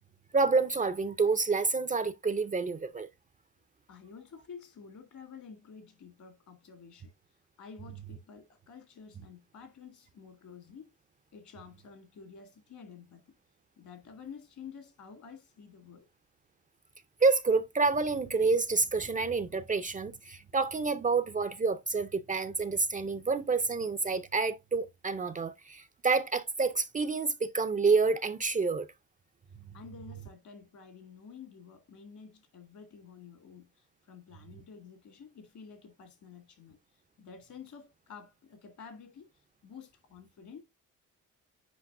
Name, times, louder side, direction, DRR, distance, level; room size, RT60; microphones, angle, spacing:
voice 1, 0.3-3.1 17.2-28.9, right 4 dB, 25° right, 0.5 m, -28 dB
voice 2, 3.9-7.1 7.6-10.9 11.3-13.3 13.8-16.1 29.7-36.8 37.2-39.3 39.6-40.6, left 6 dB, 65° left, 2.1 m, -50 dB
8.3 x 5.1 x 2.5 m
cardioid pair, 125°, 31 cm